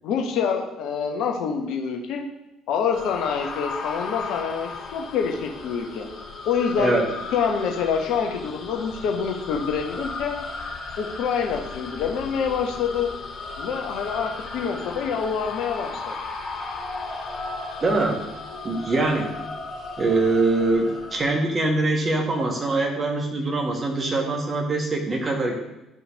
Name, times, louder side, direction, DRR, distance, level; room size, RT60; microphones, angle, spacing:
voice 1, 0.0-2.2 2.7-6.1 6.4-7.0 7.3-10.4 11.0-13.1 13.6-16.1, left 6 dB, 60° left, 2 dB, 1.0 m, -26 dB
sound 1, 2.9-21.4, left 3 dB, 45° left, 1.6 m, -35 dB
voice 2, 17.8-18.2 18.6-19.3 20.0-25.6, right 2 dB, 35° right, 2 dB, 1.7 m, -23 dB
10.5 x 5.6 x 2.8 m, 0.95 s
figure-of-eight pair, 50°, 0 cm